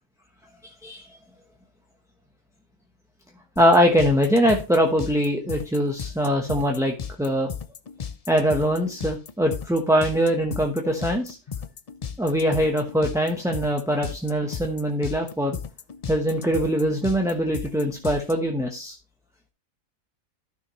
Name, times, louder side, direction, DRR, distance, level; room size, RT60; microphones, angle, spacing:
sound 1, 3.6-18.3, left 7 dB, 55° left, 0.4 m, -35 dB
voice 1, 3.6-7.5 8.3-11.4 12.2-15.6 16.1-18.9, equal, 5° right, 1 dB, 0.8 m, -22 dB
13.0 x 6.1 x 3.1 m, 0.30 s
omnidirectional pair, 1.4 m